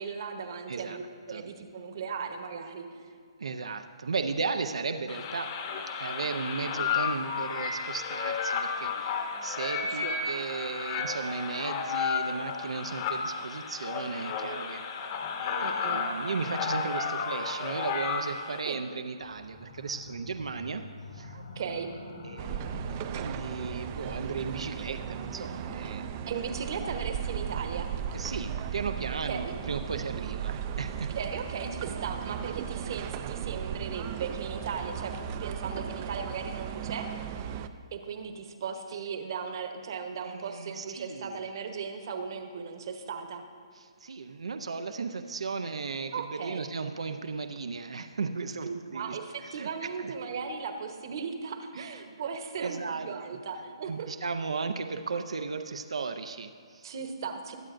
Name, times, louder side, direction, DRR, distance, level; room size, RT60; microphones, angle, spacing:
voice 1, 0.0-3.1 10.0-10.2 15.6-16.0 18.6-18.8 21.3-21.9 26.3-27.9 29.3-29.5 31.2-35.1 35.4-37.1 37.3-37.4 37.9-43.4 46.1-46.7 48.6-54.1 56.8-57.6, right 6 dB, 45° right, 6 dB, 1.0 m, -37 dB
voice 2, 3.4-5.6 6.0-14.8 15.4-20.8 21.1-21.4 22.2-26.1 28.1-31.2 40.2-41.4 43.7-49.7 50.0-50.1 51.7-52.2 52.6-53.1 53.9-56.9, right 4 dB, 90° right, 7 dB, 0.6 m, -35 dB
sound 1, 5.1-18.6, left 5 dB, 30° left, 1.0 m, -32 dB
sound 2, 19.2-29.7, left 2 dB, 70° left, 2.0 m, -47 dB
sound 3, 22.4-37.7, right 9 dB, 25° right, 0.3 m, -36 dB
21.5 x 8.8 x 2.6 m, 2.1 s
hypercardioid pair, 165°, 3 cm